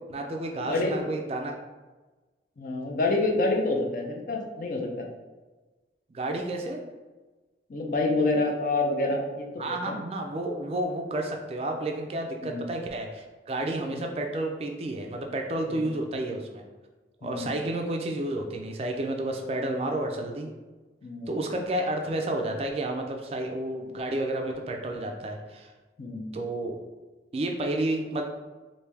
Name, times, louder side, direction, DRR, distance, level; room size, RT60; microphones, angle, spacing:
voice 1, 0.1-1.5 6.1-6.8 9.6-16.6 17.2-20.5 21.3-25.7 26.3-26.8 27.3-28.2, right 1 dB, 35° right, 2 dB, 0.3 m, -31 dB
voice 2, 0.6-1.1 2.6-5.0 7.7-10.0 12.4-12.7 13.9-14.0 15.8-15.9 17.2-17.5 21.0-21.4 26.0-26.3, left 2 dB, 50° left, 2 dB, 0.4 m, -28 dB
3.3 x 2.6 x 3.2 m, 1.2 s
head